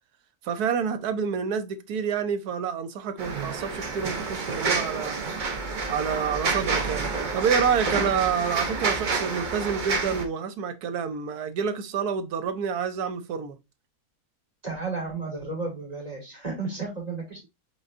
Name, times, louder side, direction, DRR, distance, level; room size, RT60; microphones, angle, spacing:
voice 1, 0.4-5.2 5.9-13.6, right 6 dB, 80° right, 1.3 m, -28 dB
sound 1, 3.2-10.2, right 4 dB, 40° right, 0.7 m, -29 dB
voice 2, 14.6-17.5, right 3 dB, 25° right, 2.5 m, -33 dB
5.1 x 3.8 x 2.5 m
omnidirectional pair, 1.6 m